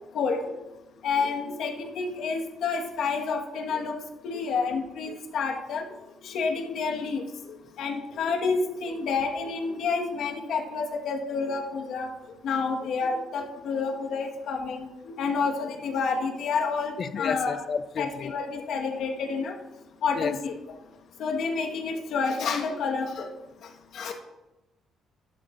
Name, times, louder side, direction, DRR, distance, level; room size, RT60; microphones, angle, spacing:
voice 1, 1.0-3.9 4.2-5.8 6.2-7.2 7.8-12.1 12.4-17.6 18.0-19.5 20.0-20.5 21.2-23.3 23.9-24.1, left 5 dB, 70° left, 2 dB, 1.5 m, -29 dB
voice 2, 17.0-18.3 20.1-20.4, left 6 dB, 45° left, 13 dB, 0.6 m, -31 dB
12.5 x 11.5 x 2.6 m, 1.0 s
cardioid pair, 130°, 0 cm